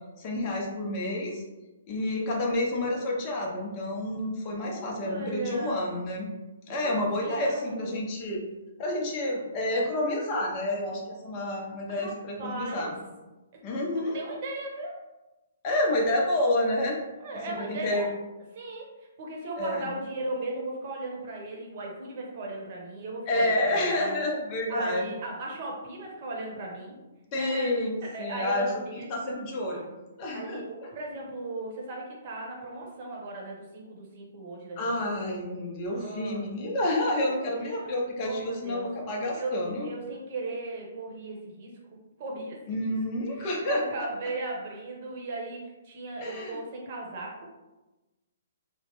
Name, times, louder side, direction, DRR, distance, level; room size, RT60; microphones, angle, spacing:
voice 1, 0.2-1.4 1.9-6.3 6.7-8.4 8.8-13.0 13.6-14.2 15.6-17.0 17.5-18.1 19.6-19.9 23.3-25.1 27.3-29.9 30.2-30.9 34.8-39.9 42.7-43.8 46.2-46.6, left 1 dB, 30° left, -1 dB, 0.6 m, -29 dB
voice 2, 4.6-6.0 6.7-8.0 11.9-12.1 12.4-12.9 14.0-15.0 17.2-18.1 18.5-18.9 19.2-24.2 24.7-26.9 27.3-27.7 28.0-29.1 29.7-29.8 30.3-34.9 35.9-36.5 37.7-38.9 39.4-39.5 39.8-41.7 42.2-43.0 43.3-47.6, right 2 dB, 45° right, -1 dB, 0.9 m, -37 dB
3.0 x 2.1 x 2.9 m, 1.1 s
hypercardioid pair, 145°, 0 cm